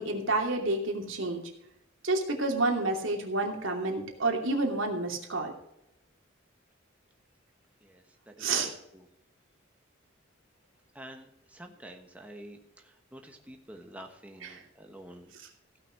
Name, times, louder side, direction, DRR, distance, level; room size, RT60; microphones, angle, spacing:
voice 1, 0.0-1.4 2.0-5.5 8.4-8.7 14.4-14.6, right 2 dB, 90° right, 2 dB, 2.8 m, -29 dB
voice 2, 7.8-8.3 8.6-8.7 10.9-12.6 13.1-15.3, right 1 dB, 5° right, 3 dB, 1.3 m, -48 dB
16.5 x 5.9 x 6.1 m, 0.83 s
head